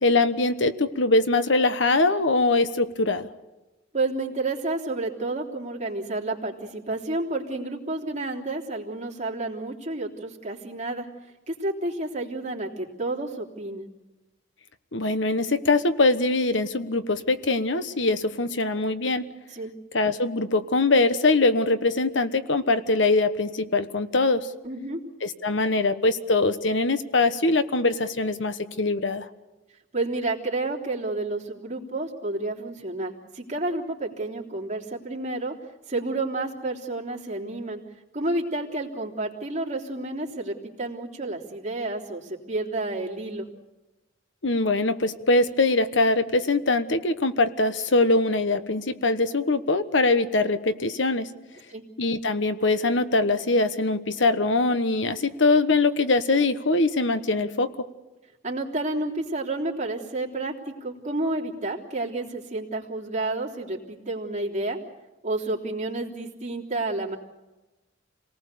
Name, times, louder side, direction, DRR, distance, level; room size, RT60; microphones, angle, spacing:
voice 1, 0.0-3.3 14.9-19.2 19.9-24.5 25.2-29.3 44.4-51.3 52.0-57.7, left 3 dB, 70° left, 11 dB, 1.2 m, -22 dB
voice 2, 3.9-11.1 11.5-13.9 19.5-19.7 24.6-25.0 29.9-35.5 35.9-37.8 38.1-43.5 51.7-51.8 58.4-64.8 65.2-67.2, right 2 dB, 40° right, -2 dB, 3.4 m, -30 dB
28.0 x 19.0 x 6.9 m, 1.1 s
head